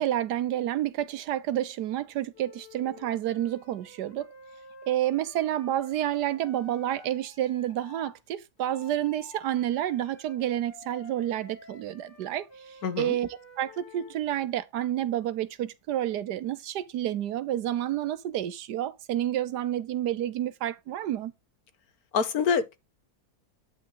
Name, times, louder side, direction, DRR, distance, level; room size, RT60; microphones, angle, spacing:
voice 1, 0.0-4.3 4.9-12.5 13.0-13.3 13.6-21.3, right 12 dB, 80° right, 1.3 m, -29 dB
Wind instrument woodwind instrument, 2.3-8.2 8.6-14.2, left 3 dB, 35° left, 1.7 m, -51 dB
voice 2, 12.8-13.2 22.1-22.8, left 6 dB, 70° left, 1.5 m, -26 dB
9.8 x 5.8 x 3.9 m
omnidirectional pair, 1.7 m